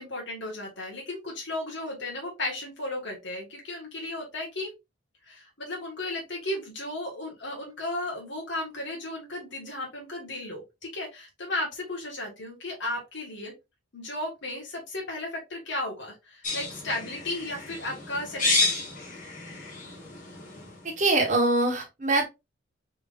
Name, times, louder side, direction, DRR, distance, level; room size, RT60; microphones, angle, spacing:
voice 1, 0.0-4.7 5.2-10.6 10.9-13.5 13.9-18.8, left 2 dB, 60° left, -1 dB, 1.5 m, -34 dB
sound 1, 16.4-20.9, left 3 dB, 40° left, 1.7 m, -30 dB
voice 2, 21.0-22.3, right 2 dB, 40° right, 1 dB, 1.4 m, -23 dB
4.3 x 3.6 x 2.5 m, 0.23 s
head